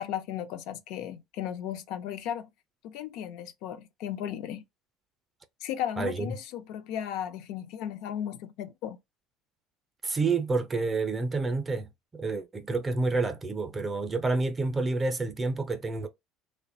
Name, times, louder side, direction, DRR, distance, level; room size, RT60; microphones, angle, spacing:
voice 1, 0.0-2.5 2.8-4.6 5.6-9.0, left 10 dB, 70° left, 0.4 m, -35 dB
voice 2, 6.0-6.4 10.0-16.1, right 3 dB, 20° right, 0.5 m, -29 dB
2.8 x 2.1 x 2.6 m
cardioid pair, 120°, 0 cm